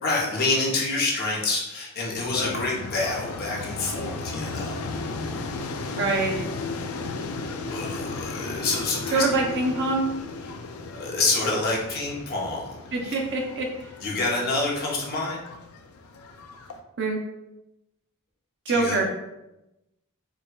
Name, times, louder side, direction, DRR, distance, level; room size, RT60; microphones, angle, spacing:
voice 1, 0.0-4.8 7.7-9.4 10.4-10.5 10.9-12.7 13.0-13.1 14.0-15.4 18.7-19.0, left 3 dB, 45° left, -3 dB, 0.8 m, -27 dB
sound 1, 2.2-16.8, left 3 dB, 65° left, 0.3 m, -35 dB
voice 2, 5.9-6.4 9.1-10.0 12.9-13.7 17.0-17.2 18.7-19.1, right 3 dB, 55° right, 1 dB, 0.6 m, -24 dB
4.7 x 2.3 x 2.2 m, 0.95 s
head